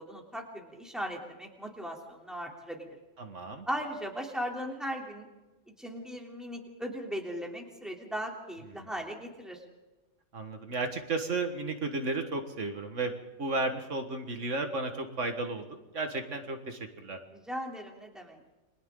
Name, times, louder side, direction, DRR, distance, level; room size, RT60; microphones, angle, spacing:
voice 1, 0.0-2.9 3.7-5.3 5.8-9.6 17.3-18.4, equal, ahead, 0 dB, 3.3 m, -38 dB
voice 2, 3.2-3.7 8.8-8.9 10.3-13.1 13.4-15.7 15.9-17.2, right 3 dB, 80° right, 5 dB, 2.0 m, -33 dB
29.5 x 23.5 x 3.9 m, 1.1 s
omnidirectional pair, 1.3 m